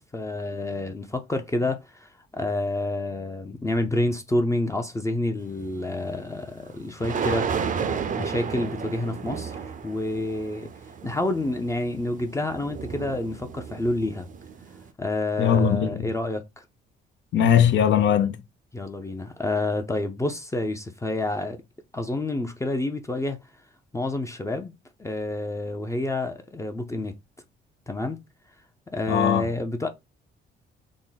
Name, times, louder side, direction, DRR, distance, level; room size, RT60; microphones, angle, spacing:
voice 1, 0.0-7.5 8.1-9.6 9.8-10.7 11.0-14.3 15.0-16.6 18.7-21.6 21.9-23.4 23.9-24.7 25.0-27.2 27.9-28.2 28.9-29.9, left 2 dB, 15° left, 0.6 m, -28 dB
sound 1, 5.6-5.8 7.0-14.9, right 6 dB, 40° right, 0.5 m, -32 dB
voice 2, 15.4-16.1 17.3-18.4 29.1-29.5, left 8 dB, 70° left, 0.7 m, -20 dB
3.7 x 2.1 x 3.9 m
cardioid pair, 90°, 20 cm